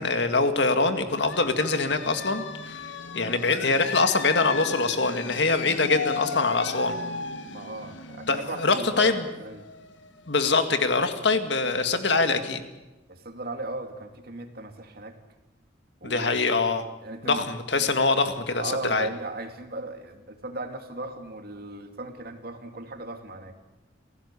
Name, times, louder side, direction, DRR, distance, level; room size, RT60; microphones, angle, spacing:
voice 1, 0.0-2.8 3.1-7.0 8.3-9.3 10.3-12.6 16.0-16.8 17.2-19.1, left 3 dB, 65° left, 7 dB, 2.0 m, -24 dB
sound 1, 1.1-10.6, left 4 dB, 85° left, 1.6 m, -36 dB
voice 2, 7.5-9.7 13.1-15.2 16.0-16.4 17.0-17.5 18.5-23.6, right 2 dB, 55° right, 6 dB, 2.5 m, -37 dB
27.5 x 16.0 x 8.4 m, 1.1 s
head